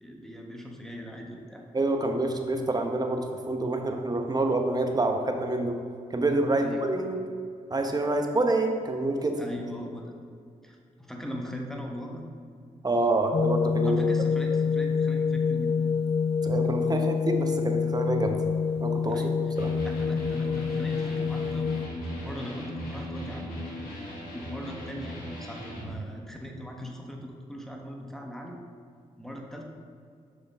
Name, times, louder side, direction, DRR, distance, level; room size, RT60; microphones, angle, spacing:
voice 1, 0.0-1.7 6.5-6.8 9.4-10.1 10.6-12.3 13.8-15.7 19.1-19.5 20.0-21.9 22.2-23.5 24.3-28.6 29.2-29.6, equal, 5° left, 0 dB, 1.2 m, -40 dB
voice 2, 1.7-5.8 6.1-7.2 7.7-9.3 12.8-14.1 16.4-18.4 18.8-19.2 19.6-19.7, right 2 dB, 25° right, 4 dB, 1.0 m, -27 dB
sound 1, 13.3-21.9, left 5 dB, 40° left, 0.4 m, -27 dB
Electric guitar, 19.5-26.0, equal, 85° left, 1.6 m, -38 dB
6.8 x 5.3 x 3.6 m, 2.4 s
supercardioid pair, 50°, 15 cm